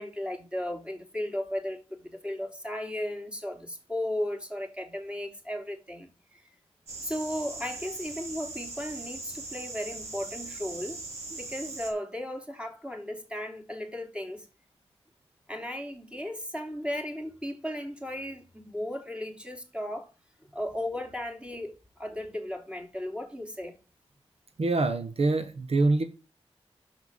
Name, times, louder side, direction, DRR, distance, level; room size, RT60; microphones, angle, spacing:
voice 1, 0.0-6.4 7.0-11.0 11.3-14.5 15.5-20.1 20.5-23.8, left 1 dB, 10° right, 3.2 m, -35 dB
sound 1, 6.9-11.9, right 3 dB, 90° right, 4.5 m, -40 dB
voice 2, 24.6-26.0, right 3 dB, 70° right, 1.2 m, -25 dB
6.9 x 6.1 x 7.4 m
cardioid pair, 40°, 11 cm